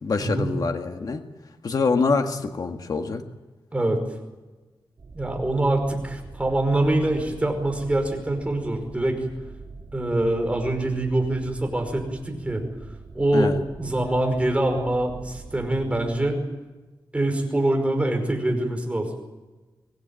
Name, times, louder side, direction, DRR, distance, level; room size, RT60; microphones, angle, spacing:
voice 1, 0.0-1.2 1.6-3.2 13.3-13.6, left 4 dB, 50° left, 5 dB, 1.8 m, -25 dB
voice 2, 3.7-4.0 5.1-9.2 9.9-12.6 13.1-13.5 13.8-16.4 17.1-19.1, right 1 dB, 15° right, 4 dB, 5.3 m, -24 dB
sound 1, 5.0-16.2, right 3 dB, 50° right, 4.7 m, -43 dB
24.5 x 18.0 x 8.9 m, 1.2 s
wide cardioid pair, 125°, 8 cm